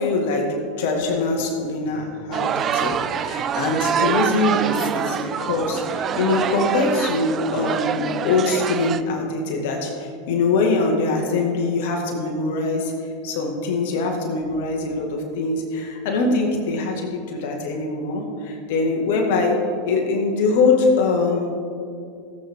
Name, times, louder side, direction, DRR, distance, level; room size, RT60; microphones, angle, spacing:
voice 1, 0.0-21.6, left 3 dB, 65° left, 1 dB, 1.9 m, -23 dB
sound 1, 2.3-9.0, right 8 dB, 35° right, 0.5 m, -25 dB
16.5 x 8.0 x 3.7 m, 2.4 s
hypercardioid pair, 90°, 0 cm